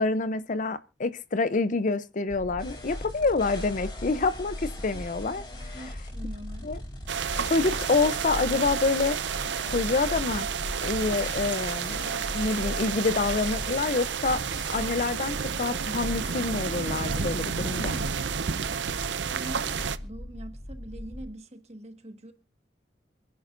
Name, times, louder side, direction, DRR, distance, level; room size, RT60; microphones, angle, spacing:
voice 1, 0.0-5.8 6.6-6.8 7.4-9.2 9.7-10.5 10.8-14.4 14.7-18.0, left 3 dB, 45° left, 0.6 m, -27 dB
sound 1, 2.3-21.3, left 1 dB, 60° left, 2.0 m, -39 dB
sound 2, 2.6-15.0, left 2 dB, 30° left, 4.4 m, -45 dB
voice 2, 5.4-6.7 18.7-22.3, right 1 dB, 40° right, 1.5 m, -44 dB
sound 3, 7.1-20.0, right 7 dB, 85° right, 0.6 m, -31 dB
27.5 x 10.5 x 2.5 m
head